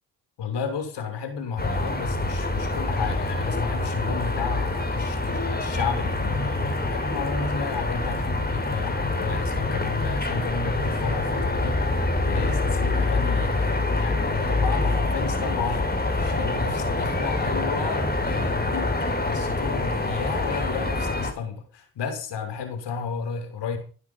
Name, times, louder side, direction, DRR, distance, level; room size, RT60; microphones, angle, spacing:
voice 1, 0.4-23.8, left 6 dB, 80° left, 7.0 m, -32 dB
sound 1, 1.6-21.3, left 2 dB, 20° left, 6.6 m, -26 dB
20.5 x 12.0 x 5.7 m
supercardioid pair, 60°, 41 cm